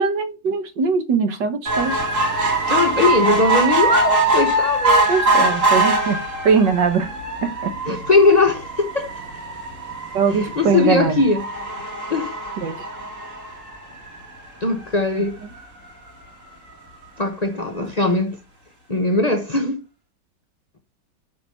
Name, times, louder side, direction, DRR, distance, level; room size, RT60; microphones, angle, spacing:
voice 1, 0.0-2.0 5.1-7.1 7.4-7.7 10.1-11.2 12.6-12.8 15.0-15.2, right 5 dB, 80° right, 1.9 m, -21 dB
sound 1, 1.7-14.3 14.8-14.9 15.2-15.3 15.6-15.7, right 2 dB, 45° right, 2.8 m, -22 dB
voice 2, 2.7-5.1 7.9-9.2 10.3-11.5 12.1-12.4 14.6-15.4 17.2-18.4 18.9-19.8, left 3 dB, 40° left, 0.6 m, -20 dB
7.2 x 5.4 x 5.4 m
omnidirectional pair, 1.9 m